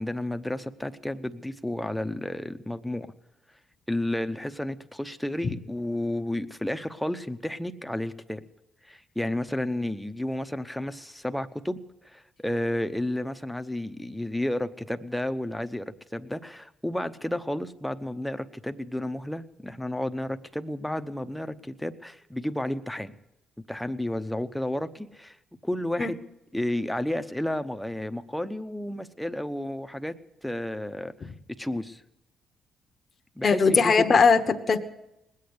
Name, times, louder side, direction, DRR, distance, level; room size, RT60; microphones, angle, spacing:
voice 1, 0.0-3.1 3.9-8.4 8.8-11.8 12.0-23.1 23.7-25.4 25.6-26.2 26.5-30.1 30.4-31.3 31.6-32.0 33.4-34.0, left 1 dB, 5° left, 9 dB, 0.8 m, -31 dB
voice 2, 33.4-34.8, left 5 dB, 45° left, 6 dB, 1.1 m, -20 dB
20.0 x 8.6 x 8.1 m, 0.88 s
cardioid pair, 90°, 0 cm